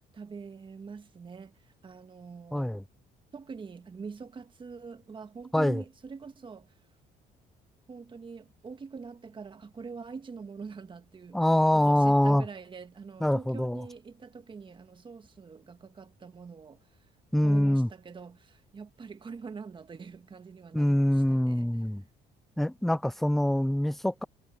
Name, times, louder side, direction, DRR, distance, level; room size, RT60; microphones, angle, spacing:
voice 1, 0.1-2.8 3.3-6.7 7.9-11.4 11.7-17.0 17.4-21.8, right 5 dB, 30° right, 1.7 m, -44 dB
voice 2, 2.5-2.8 5.5-5.8 11.3-12.5 13.2-13.8 17.3-17.9 20.7-22.0 22.6-24.2, left 1 dB, ahead, 0.4 m, -24 dB
cardioid pair, 110°, 17 cm